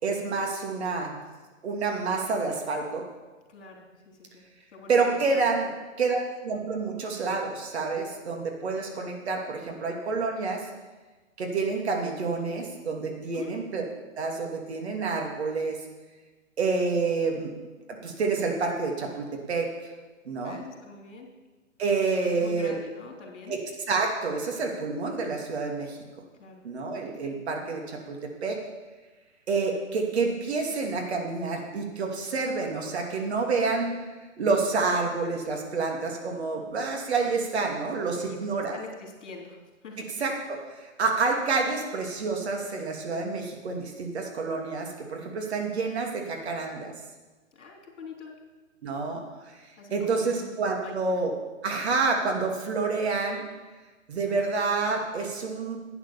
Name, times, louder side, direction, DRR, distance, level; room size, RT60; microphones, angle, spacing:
voice 1, 0.0-1.2 1.6-3.0 4.9-5.7 6.0-10.7 11.4-13.8 14.2-15.8 16.6-17.5 18.0-19.9 20.2-20.6 21.8-22.7 23.5-23.6 23.9-26.0 26.6-28.6 29.5-33.9 34.4-38.8 40.0-46.9 48.8-49.6 49.9-51.3 51.6-53.4 54.1-55.8, right 4 dB, 50° right, 2 dB, 2.6 m, -28 dB
voice 2, 3.5-4.4 4.7-5.0 5.3-5.5 13.3-13.6 20.4-21.3 22.3-23.5 26.4-26.6 38.2-38.4 38.7-40.1 47.5-48.4 49.8-50.5 50.8-51.2, left 4 dB, 55° left, 1 dB, 3.3 m, -44 dB
11.0 x 8.9 x 7.2 m, 1.2 s
hypercardioid pair, 145°, 41 cm